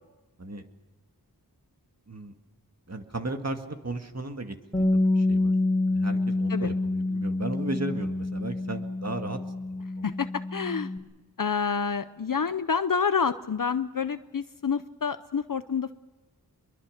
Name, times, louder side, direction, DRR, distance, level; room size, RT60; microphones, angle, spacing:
voice 1, 2.9-5.5 5.9-9.4 9.7-10.0, right 2 dB, 45° right, 5 dB, 2.0 m, -35 dB
Bass guitar, 4.7-11.0, left 2 dB, 5° left, 4.2 m, -27 dB
voice 2, 10.0-10.9 11.4-15.9, left 6 dB, 60° left, 12 dB, 0.7 m, -28 dB
24.5 x 22.5 x 6.6 m, 1.2 s
wide cardioid pair, 50°, 38 cm